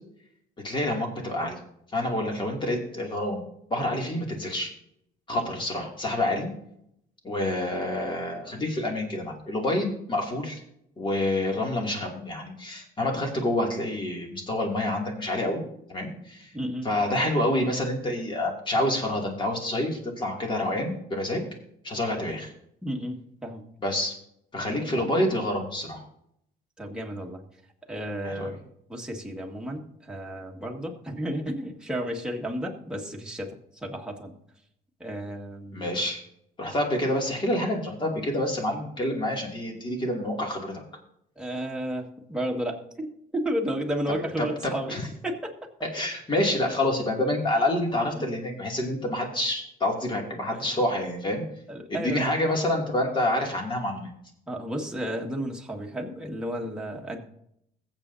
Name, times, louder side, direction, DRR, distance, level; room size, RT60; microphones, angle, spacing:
voice 1, 0.6-1.6 1.9-3.4 3.7-4.7 5.3-6.5 7.2-10.6 11.0-15.6 15.9-16.5 16.8-21.4 21.8-22.5 23.8-24.1 24.5-26.0 28.2-28.5 35.7-36.2 36.6-40.8 44.4-45.1 45.8-51.4 51.9-54.1, left 1 dB, 30° left, 0 dB, 2.6 m, -27 dB
voice 2, 16.5-16.9 22.8-23.6 24.7-25.0 26.8-27.4 27.9-28.6 28.9-34.3 35.0-35.9 41.4-45.0 45.2-45.5 48.2-48.3 51.7-52.3 54.5-57.2, equal, 5° right, 0 dB, 1.9 m, -32 dB
21.5 x 7.6 x 2.7 m, 0.76 s
cardioid pair, 110°, 17 cm